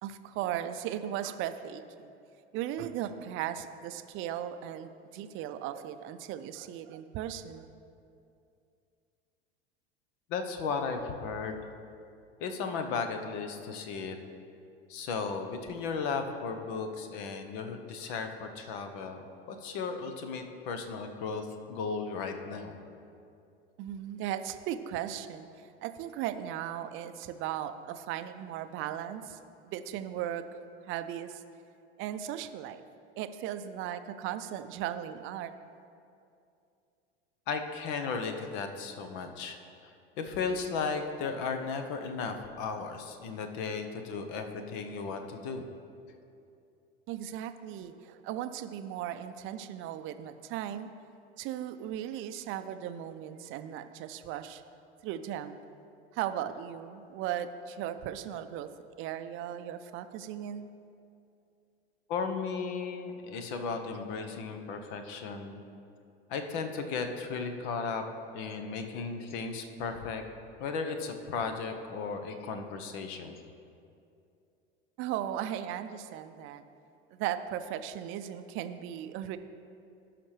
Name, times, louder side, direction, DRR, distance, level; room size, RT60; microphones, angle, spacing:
voice 1, 0.0-2.1 2.5-7.7 23.8-30.4 30.9-31.4 32.0-32.8 33.2-35.5 47.1-50.9 51.4-54.6 55.0-55.6 56.1-58.7 59.0-60.7 75.0-76.6 77.1-79.4, right 11 dB, 40° right, 11 dB, 0.6 m, -37 dB
voice 2, 10.3-11.7 12.4-14.2 14.9-22.8 37.5-45.6 62.1-65.6 66.3-68.0 68.3-70.2 70.6-73.3, left 5 dB, 55° left, 6 dB, 1.0 m, -35 dB
15.5 x 5.9 x 3.3 m, 2.6 s
figure-of-eight pair, 80°, 32 cm